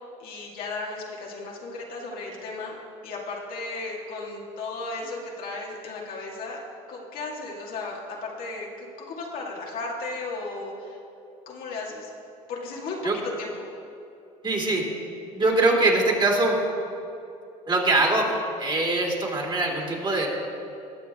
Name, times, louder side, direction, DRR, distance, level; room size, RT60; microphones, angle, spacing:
voice 1, 0.2-2.8 3.0-6.6 6.9-11.0 11.5-12.1 12.5-13.0 13.4-13.7, left 3 dB, 55° left, -2 dB, 2.2 m, -35 dB
voice 2, 14.4-14.8 15.3-16.6 17.7-20.3, right 2 dB, 25° right, -1 dB, 2.8 m, -23 dB
20.0 x 7.0 x 3.7 m, 2.7 s
hypercardioid pair, 80°, 17 cm